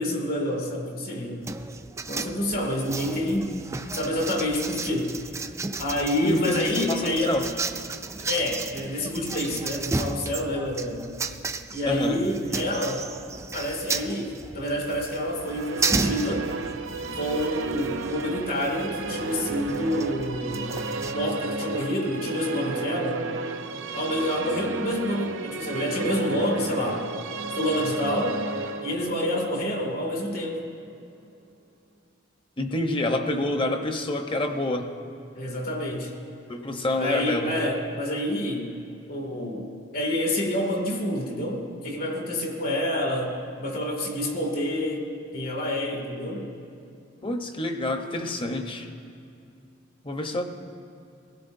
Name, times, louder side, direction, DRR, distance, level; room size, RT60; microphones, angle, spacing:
voice 1, 0.0-1.5 2.1-5.1 5.8-7.4 8.3-11.2 11.7-13.1 13.5-16.5 17.1-20.7 21.1-23.2 23.9-27.1 27.6-28.4 28.8-30.7 35.4-36.1 37.0-38.7 39.1-45.0 45.3-46.5, left 1 dB, 50° left, 1 dB, 2.4 m, -28 dB
sound 1, 1.4-21.1, right 3 dB, 15° right, 0.4 m, -34 dB
voice 2, 6.2-7.4 11.9-12.2 32.6-34.9 36.5-37.5 47.2-48.9 50.0-50.4, left 1 dB, 25° left, 5 dB, 0.9 m, -27 dB
Musical instrument, 15.2-30.7, right 3 dB, 80° right, 0.8 m, -33 dB
23.5 x 16.0 x 2.7 m, 2.5 s
head